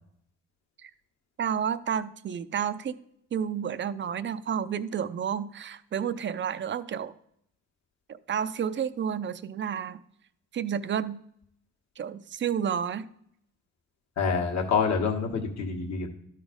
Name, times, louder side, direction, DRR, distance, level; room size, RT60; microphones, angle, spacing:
voice 1, 1.4-3.0 3.3-7.1 8.1-10.0 10.5-11.2 12.0-13.1, right 8 dB, 40° right, 14 dB, 0.5 m, -30 dB
voice 2, 14.2-16.1, left 5 dB, 65° left, 3 dB, 1.6 m, -27 dB
12.5 x 4.1 x 5.1 m, 0.71 s
cardioid pair, 90°, 30 cm